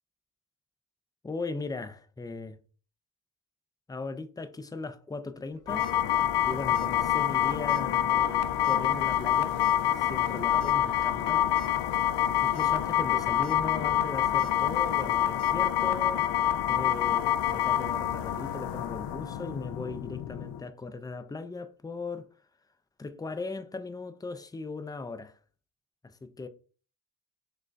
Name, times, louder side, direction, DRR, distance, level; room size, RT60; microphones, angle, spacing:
voice 1, 1.2-2.6 3.9-5.9 6.5-9.6 10.0-11.4 12.4-16.3 16.7-22.3 23.0-25.4 26.2-26.5, left 3 dB, 10° left, 0.4 m, -38 dB
sound 1, 5.6-5.9 6.7-7.0 7.2-7.3 7.7-7.8 8.6-8.9 9.6-9.7 10.6-10.7 11.2-11.3 11.6-11.7 12.4-12.7 13.1-13.6 14.4-14.5 15.4-15.5, right 3 dB, 60° right, 1.3 m, -51 dB
sound 2, 5.7-20.6, left 10 dB, 65° left, 0.5 m, -27 dB
6.2 x 2.2 x 2.5 m
supercardioid pair, 45°, 44 cm